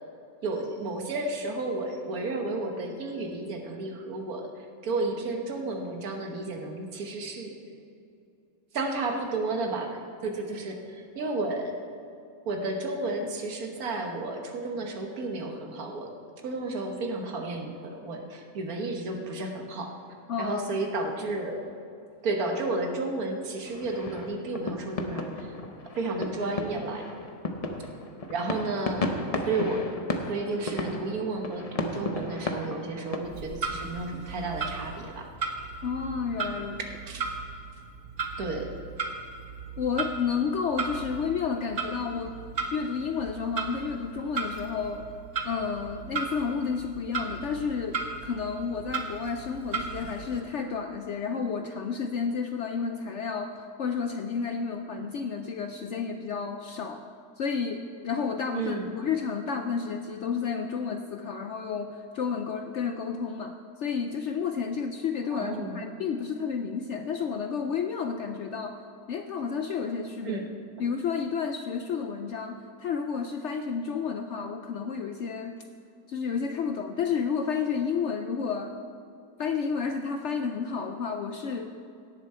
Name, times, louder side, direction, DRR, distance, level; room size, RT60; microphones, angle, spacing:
voice 1, 0.4-7.5 8.7-11.7 12.4-16.1 16.4-19.9 20.4-21.6 22.2-25.5 25.9-27.0 28.3-29.1 29.5-29.9 30.3-35.3 37.0-37.2 38.4-38.7 58.5-58.9 65.3-65.8 70.2-70.4, right 2 dB, 70° right, 3 dB, 1.6 m, -32 dB
voice 2, 20.3-20.7 35.8-36.8 39.8-42.4 42.7-45.1 45.4-57.0 57.4-68.8 69.1-70.4 70.8-75.6 76.1-78.8 79.4-81.8, left 6 dB, 65° left, 6 dB, 0.7 m, -31 dB
sound 1, 23.6-33.2, left 2 dB, 35° left, 0.6 m, -34 dB
Clock, 33.2-50.4, right 4 dB, 50° right, 1.1 m, -36 dB
17.0 x 7.1 x 4.3 m, 2.6 s
omnidirectional pair, 1.6 m